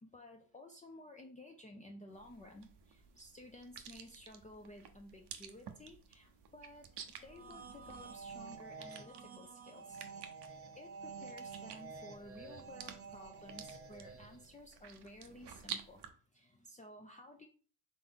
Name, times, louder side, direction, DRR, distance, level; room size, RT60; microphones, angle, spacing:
voice 1, 0.0-6.8 7.2-10.1 10.5-16.0 16.3-17.5, left 1 dB, 20° left, 2 dB, 0.5 m, -54 dB
sound 1, 2.1-16.1, right 8 dB, 70° right, 0.7 m, -52 dB
sound 2, 7.2-14.6, right 5 dB, 35° right, 0.6 m, -50 dB
3.8 x 3.4 x 3.6 m, 0.41 s
cardioid pair, 80°, 43 cm